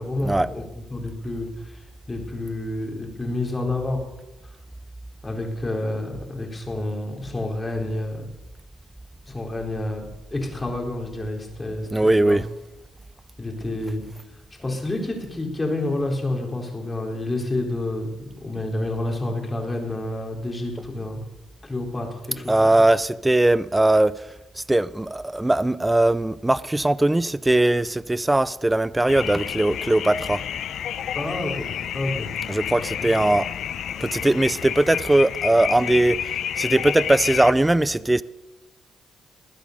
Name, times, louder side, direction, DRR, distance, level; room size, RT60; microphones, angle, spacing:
voice 1, 0.0-4.0 5.2-8.2 9.3-10.0 10.3-12.4 13.4-14.0 14.6-18.1 18.4-21.2 21.6-22.7 31.1-31.7 31.9-32.6 33.1-33.2, left 2 dB, 20° left, 4.2 m, -29 dB
voice 2, 11.9-12.5 22.5-24.3 24.7-30.4 32.5-33.5 34.0-36.2 36.6-38.2, right 1 dB, 10° right, 0.5 m, -20 dB
sound 1, 29.1-37.5, left 9 dB, 70° left, 0.7 m, -30 dB
20.0 x 9.1 x 6.7 m
cardioid pair, 90°, 0 cm